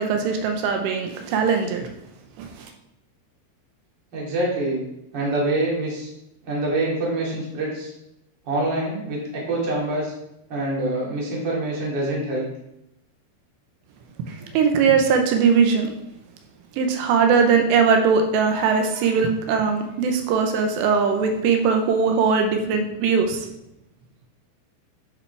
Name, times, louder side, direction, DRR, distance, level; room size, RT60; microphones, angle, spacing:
voice 1, 0.0-1.9 2.4-2.5 14.3-15.9 16.8-23.5, right 5 dB, 85° right, 4 dB, 3.0 m, -20 dB
voice 2, 4.1-4.8 5.1-6.1 6.5-7.9 8.5-10.1 10.5-12.5, right 2 dB, 35° right, -5 dB, 2.1 m, -25 dB
9.8 x 5.1 x 3.4 m, 0.82 s
omnidirectional pair, 4.9 m